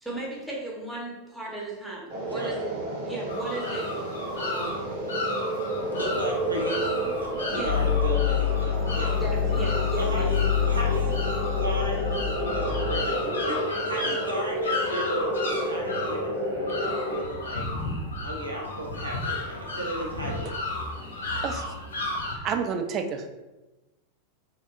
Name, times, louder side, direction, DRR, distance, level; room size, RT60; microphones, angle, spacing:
voice 1, 0.0-2.7 3.0-3.9 4.4-4.9 5.7-5.9 7.5-7.8 9.1-10.3, right 2 dB, ahead, -5 dB, 0.8 m, -35 dB
sound 1, 2.1-17.2, right 1 dB, 50° right, 0.8 m, -31 dB
sound 2, 3.3-22.3, left 2 dB, 70° left, 0.6 m, -34 dB
voice 2, 5.9-9.2 10.0-10.4 10.7-11.2 11.5-17.6 18.2-20.6, right 1 dB, 80° right, -2 dB, 0.5 m, -35 dB
sound 3, 7.6-13.0, left 8 dB, 30° left, 0.8 m, -26 dB
voice 3, 22.3-23.3, right 6 dB, 35° right, 5 dB, 0.3 m, -29 dB
3.7 x 2.1 x 2.2 m, 1.1 s
figure-of-eight pair, 90°, 0 cm